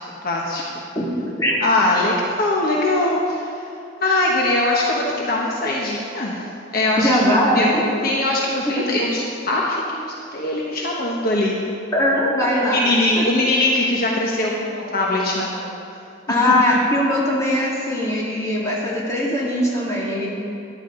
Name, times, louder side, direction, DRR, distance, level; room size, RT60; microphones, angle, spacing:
voice 1, 0.2-0.6 1.6-3.5 4.0-6.5 6.7-7.1 7.5-7.7 8.0-11.6 12.7-15.7 16.3-16.4, left 2 dB, 50° left, -3 dB, 1.2 m, -21 dB
voice 2, 7.0-7.8 11.9-13.2 16.3-20.3, left 1 dB, 15° left, -6 dB, 2.4 m, -20 dB
14.0 x 10.5 x 3.9 m, 2.6 s
head